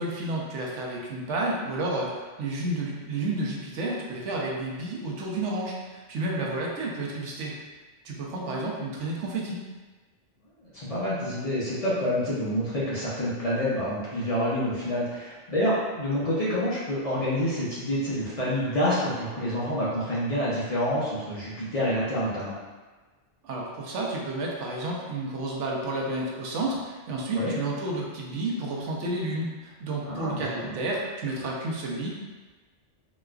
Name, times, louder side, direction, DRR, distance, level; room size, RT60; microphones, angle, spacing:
voice 1, 0.0-7.6 8.0-9.6 23.4-32.1, right 2 dB, 80° right, -2 dB, 0.9 m, -31 dB
voice 2, 10.7-22.6 27.3-27.5 30.1-30.8, equal, 40° left, -8 dB, 0.5 m, -27 dB
3.9 x 2.3 x 2.3 m, 1.3 s
omnidirectional pair, 1.2 m